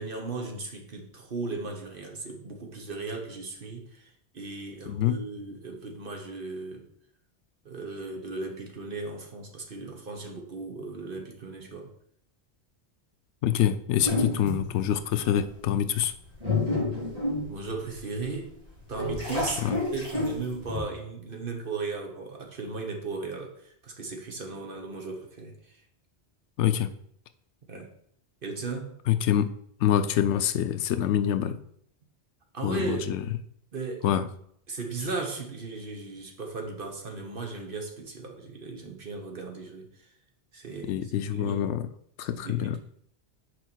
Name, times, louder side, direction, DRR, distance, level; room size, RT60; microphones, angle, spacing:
voice 1, 0.0-4.1 4.3-6.8 7.6-11.9 17.5-18.5 18.9-25.5 27.7-27.9 28.4-29.0 32.5-33.1 33.7-34.1 34.7-39.9 40.5-41.6 42.3-42.8, right 3 dB, 55° right, 3 dB, 1.3 m, -36 dB
voice 2, 4.9-5.2 13.4-16.1 19.6-19.8 26.6-26.9 29.1-29.5 29.8-31.6 32.6-33.2 34.0-34.3 40.8-41.9 42.2-42.8, left 10 dB, 85° left, 12 dB, 0.9 m, -26 dB
sound 1, 14.0-14.8 15.4-15.5 16.1-18.2 18.7-20.8, left 2 dB, 35° right, 3.1 m, -29 dB
6.2 x 4.8 x 4.5 m, 0.67 s
omnidirectional pair, 1.1 m